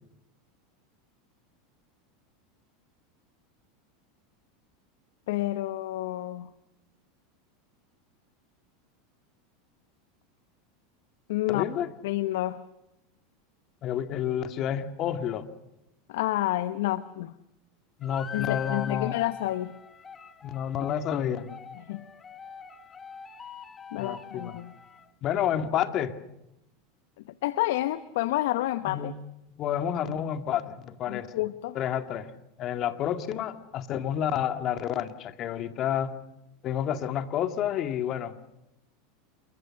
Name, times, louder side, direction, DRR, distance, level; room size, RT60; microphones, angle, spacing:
voice 1, 5.3-6.5 11.3-11.6 12.0-12.6 16.1-17.4 18.3-19.7 21.8-22.1 23.9-24.7 27.4-29.1 31.1-31.8, left 15 dB, 70° left, 14 dB, 0.9 m, -29 dB
voice 2, 11.5-11.9 13.8-15.5 18.0-19.2 20.4-21.6 24.0-24.5 25.2-26.2 28.9-29.1 29.6-31.3 31.7-32.3 32.6-36.2 36.6-38.3, left 9 dB, 45° left, 8 dB, 2.0 m, -29 dB
sound 1, 18.0-25.1, left 6 dB, 25° left, 1.9 m, -43 dB
28.0 x 23.5 x 6.5 m, 0.89 s
hypercardioid pair, 90°, 0 cm